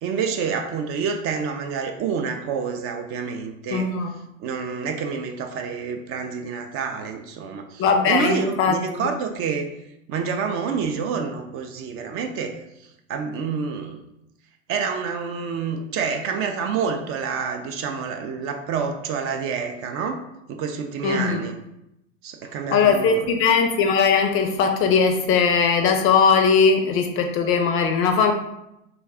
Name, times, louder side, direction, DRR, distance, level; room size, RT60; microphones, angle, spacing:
voice 1, 0.0-3.9 4.4-9.7 10.1-14.0 14.7-20.2 20.5-21.5 22.2-23.3, right 6 dB, 35° right, 4 dB, 0.4 m, -28 dB
voice 2, 3.7-4.1 7.8-9.0 21.0-21.4 22.7-28.3, left 5 dB, 35° left, 5 dB, 0.4 m, -19 dB
3.4 x 2.2 x 3.4 m, 0.85 s
hypercardioid pair, 90°, 40 cm